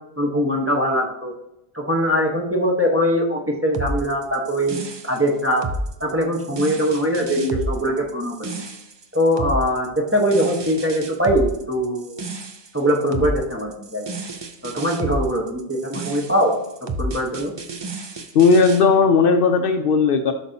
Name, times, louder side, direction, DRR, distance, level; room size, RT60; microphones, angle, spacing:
voice 1, 0.2-1.3 1.7-4.8 5.0-5.6 6.0-8.5 9.1-12.1 12.7-14.1 14.6-16.5 17.0-17.5, equal, 15° right, -1 dB, 1.0 m, -21 dB
sound 1, 3.7-18.8, right 2 dB, 35° right, 0.4 m, -31 dB
voice 2, 18.3-20.3, left 5 dB, 65° left, 6 dB, 0.7 m, -16 dB
8.2 x 6.1 x 2.7 m, 0.88 s
omnidirectional pair, 1.1 m